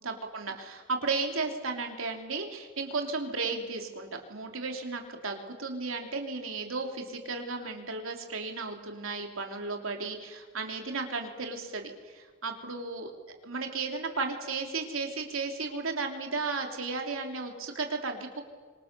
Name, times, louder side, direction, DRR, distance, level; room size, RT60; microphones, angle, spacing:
voice 1, 0.0-13.1 13.4-18.4, right 4 dB, 80° right, 3 dB, 3.2 m, -34 dB
26.0 x 25.5 x 6.8 m, 1.5 s
head